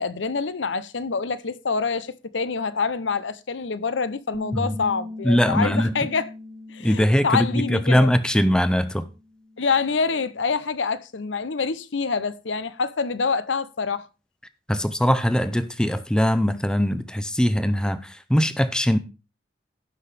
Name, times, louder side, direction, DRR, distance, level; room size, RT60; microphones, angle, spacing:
voice 1, 0.0-6.3 6.7-8.1 9.6-14.1, left 5 dB, 85° left, 0.7 m, -26 dB
Bass guitar, 4.3-10.6, left 2 dB, 10° right, 1.2 m, -40 dB
voice 2, 5.2-5.9 6.8-9.1 14.7-19.0, equal, 5° left, 0.6 m, -21 dB
17.0 x 5.7 x 3.4 m
head